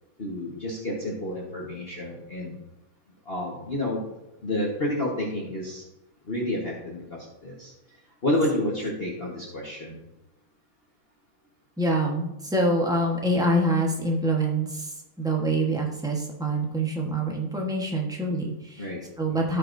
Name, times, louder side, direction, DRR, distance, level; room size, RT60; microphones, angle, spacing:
voice 1, 0.2-2.6 3.2-4.1 4.4-5.8 6.3-7.7 8.2-10.0 18.8-19.0 19.3-19.4, left 1 dB, 35° left, -4 dB, 1.2 m, -29 dB
voice 2, 11.8-18.9 19.2-19.6, right 1 dB, 5° right, -1 dB, 0.5 m, -25 dB
15.0 x 5.5 x 2.6 m, 0.93 s
omnidirectional pair, 2.3 m